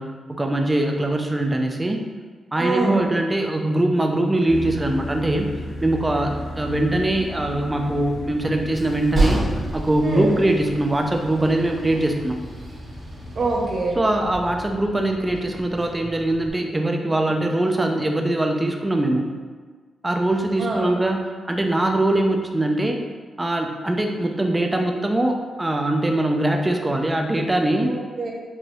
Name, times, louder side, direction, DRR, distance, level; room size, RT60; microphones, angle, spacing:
voice 1, 0.0-2.0 2.5-5.5 5.8-12.4 14.0-19.3 20.0-23.0 23.4-28.0, right 1 dB, 15° right, 3 dB, 0.4 m, -22 dB
voice 2, 2.6-3.0 10.0-10.3 13.4-14.0 20.6-20.9 27.9-28.3, right 2 dB, 60° right, -2 dB, 0.8 m, -24 dB
sound 1, 4.5-13.7, left 1 dB, 85° left, 1.0 m, -36 dB
Train, 7.9-16.5, right 2 dB, 30° right, 1.0 m, -31 dB
4.6 x 2.6 x 3.0 m, 1.5 s
cardioid pair, 115°, 0 cm